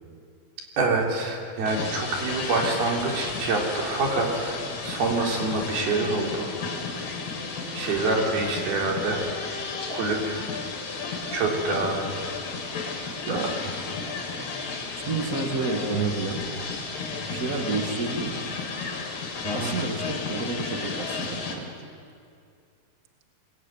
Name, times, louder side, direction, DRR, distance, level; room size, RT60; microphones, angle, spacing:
voice 1, 0.8-6.6 7.7-9.2 9.9-10.4 11.3-12.1 13.3-13.4 19.4-19.7, right 3 dB, 70° right, 0 dB, 5.5 m, -26 dB
sound 1, 1.7-21.6, left 4 dB, 85° left, 5.4 m, -33 dB
voice 2, 13.3-13.6 15.1-16.4 17.3-18.4 19.5-21.8, right 4 dB, 30° right, 4 dB, 1.7 m, -30 dB
26.5 x 21.5 x 9.2 m, 2.4 s
omnidirectional pair, 4.6 m